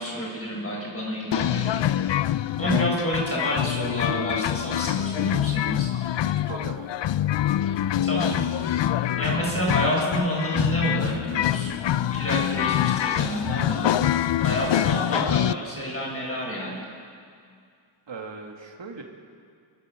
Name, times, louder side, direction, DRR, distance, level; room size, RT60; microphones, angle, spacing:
voice 1, 0.0-1.8 2.6-5.9 7.6-7.8 8.0-8.4 9.2-11.8 12.1-13.9 14.4-16.8, equal, 25° left, -3 dB, 7.2 m, -29 dB
sound 1, 1.3-15.5, left 11 dB, 60° left, 0.5 m, -25 dB
voice 2, 6.3-7.1 14.6-15.7 18.1-19.0, right 4 dB, 60° right, 2 dB, 2.3 m, -39 dB
29.0 x 11.5 x 7.8 m, 2.2 s
wide cardioid pair, 120°, 50 cm